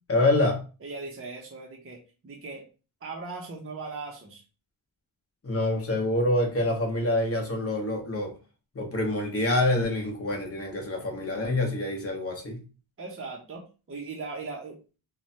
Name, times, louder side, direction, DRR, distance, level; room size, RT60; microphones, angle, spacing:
voice 1, 0.1-0.6 5.4-8.3 8.7-12.6, left 1 dB, 30° left, 2 dB, 0.8 m, -26 dB
voice 2, 0.8-2.7 3.0-4.4 13.0-14.8, right 3 dB, 30° right, 0 dB, 0.5 m, -39 dB
3.1 x 2.1 x 2.7 m, 0.35 s
wide cardioid pair, 110°, 47 cm